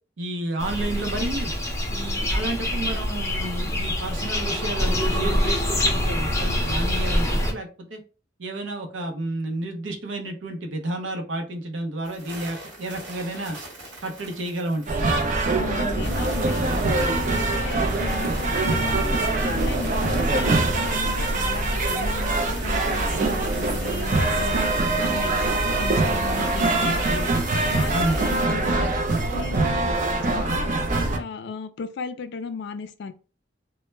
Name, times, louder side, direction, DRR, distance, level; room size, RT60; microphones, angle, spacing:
voice 1, 0.2-1.5 1.9-8.0 8.4-13.6 14.0-15.1 27.9-28.2, right 1 dB, 90° right, 0.6 m, -31 dB
sound 1, 0.6-7.5, left 1 dB, 15° left, 0.6 m, -25 dB
sound 2, 12.0-28.5, right 2 dB, 70° right, 1.1 m, -39 dB
sound 3, 14.9-31.2, right 2 dB, 45° right, 0.5 m, -23 dB
voice 2, 15.5-19.1 19.4-24.6 25.0-27.3 27.7-28.9 29.3-30.0 30.2-33.1, left 5 dB, 65° left, 0.4 m, -35 dB
2.1 x 2.1 x 3.2 m
head